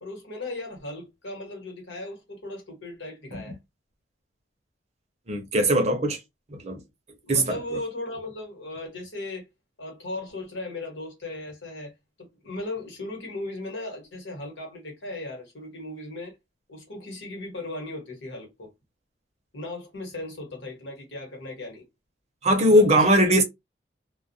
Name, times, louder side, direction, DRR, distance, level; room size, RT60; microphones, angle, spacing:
voice 1, 0.0-3.6 7.2-9.4 9.8-11.9 12.2-16.4 16.7-18.7 19.5-21.8 22.7-23.3, left 2 dB, 75° left, 1.2 m, -37 dB
voice 2, 5.3-6.2 6.6-6.8 7.3-7.6 22.4-23.4, right 1 dB, 35° right, 0.6 m, -20 dB
2.4 x 2.0 x 2.6 m
head